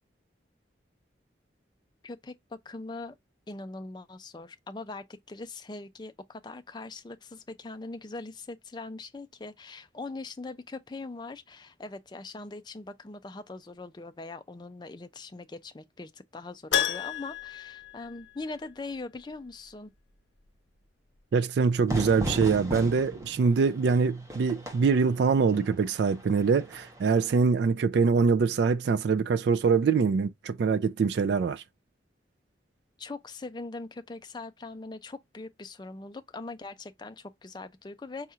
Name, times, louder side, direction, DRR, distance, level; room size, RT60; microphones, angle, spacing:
voice 1, 2.0-3.2 3.5-19.9 33.0-38.3, left 3 dB, 25° left, 0.4 m, -41 dB
Keyboard (musical), 16.7-18.8 19.0-19.1 21.8-21.9 22.2-22.3, left 10 dB, 80° left, 0.6 m, -31 dB
voice 2, 21.3-31.6, right 5 dB, 65° right, 0.3 m, -24 dB
Fire / Fireworks, 21.9-27.4, right 1 dB, 15° right, 0.9 m, -37 dB
5.5 x 2.9 x 2.4 m
head